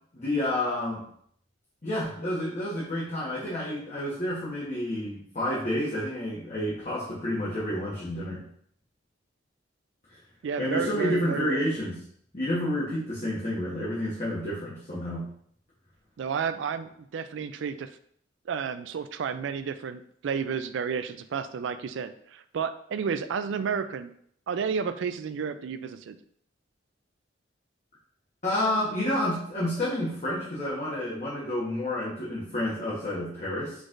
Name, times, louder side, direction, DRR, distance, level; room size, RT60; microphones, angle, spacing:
voice 1, 0.1-1.0 1.8-8.4 10.6-12.0 12.3-15.3 28.4-33.7, left 1 dB, 40° left, -8 dB, 1.1 m, -29 dB
voice 2, 10.4-11.6 16.2-17.9 18.5-24.1 24.5-26.2, right 6 dB, 80° right, 11 dB, 0.3 m, -31 dB
4.7 x 4.1 x 2.5 m, 0.66 s
head